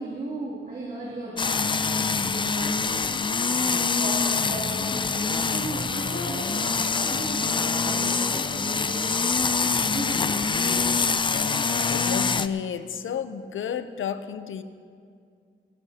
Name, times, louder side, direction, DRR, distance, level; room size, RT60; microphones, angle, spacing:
voice 1, 0.0-10.9, right 2 dB, 45° right, -8 dB, 2.8 m, -37 dB
sound 1, 1.4-12.5, left 4 dB, 25° left, 0.4 m, -25 dB
sound 2, 6.1-10.9, left 2 dB, 55° left, 1.2 m, -42 dB
voice 2, 11.3-14.6, left 7 dB, 85° left, 11 dB, 0.6 m, -32 dB
21.0 x 14.0 x 2.8 m, 2.2 s
wide cardioid pair, 125°, 20 cm